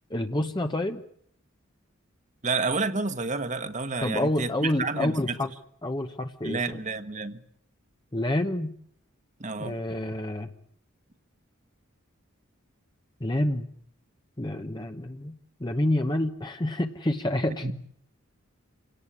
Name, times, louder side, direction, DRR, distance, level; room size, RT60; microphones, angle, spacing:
voice 1, 0.1-1.0 4.0-5.5 5.8-6.8 8.1-8.7 9.6-10.5 13.2-13.7 14.4-17.7, left 1 dB, 20° left, 1.0 m, -28 dB
voice 2, 2.4-5.3 6.4-7.4 9.4-9.8 17.6-17.7, right 4 dB, 35° right, 1.4 m, -30 dB
27.5 x 18.0 x 9.9 m
head